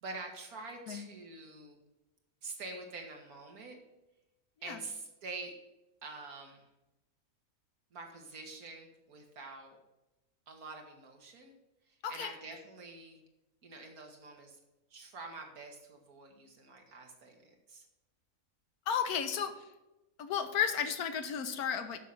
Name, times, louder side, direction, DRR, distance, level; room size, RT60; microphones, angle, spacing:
voice 1, 0.0-1.8 2.4-3.8 4.6-5.5 6.0-6.7 7.9-9.8 10.5-11.6 12.1-13.2 13.6-14.6 14.9-17.9, right 3 dB, 75° right, 2 dB, 2.0 m, -46 dB
voice 2, 18.9-19.5 20.2-22.0, left 8 dB, 80° left, 8 dB, 1.3 m, -33 dB
7.4 x 6.2 x 7.0 m, 0.99 s
omnidirectional pair, 1.6 m